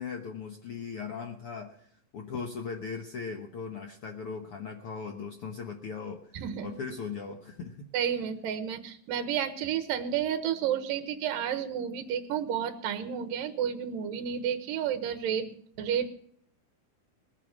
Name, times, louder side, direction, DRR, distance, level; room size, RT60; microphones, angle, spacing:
voice 1, 0.0-7.8, left 5 dB, 70° left, 3 dB, 1.3 m, -39 dB
voice 2, 6.3-6.7 7.9-16.1, right 9 dB, 75° right, 9 dB, 2.8 m, -31 dB
20.5 x 8.7 x 6.1 m, 0.63 s
omnidirectional pair, 4.1 m